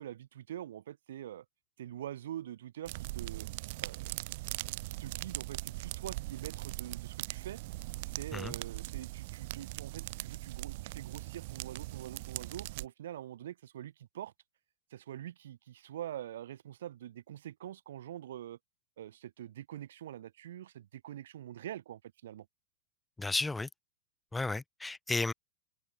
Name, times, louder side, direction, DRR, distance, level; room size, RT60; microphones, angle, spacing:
voice 1, 0.0-1.4 1.8-3.5 3.8-7.6 8.0-14.3 14.9-18.6 19.0-22.5, right 11 dB, 80° right, 2.3 m, -45 dB
sound 1, 2.9-12.9, right 21 dB, 50° right, 1.8 m, -40 dB
voice 2, 23.2-23.7 24.3-25.3, left 3 dB, 5° left, 0.4 m, -33 dB
supercardioid pair, 165°, 0 cm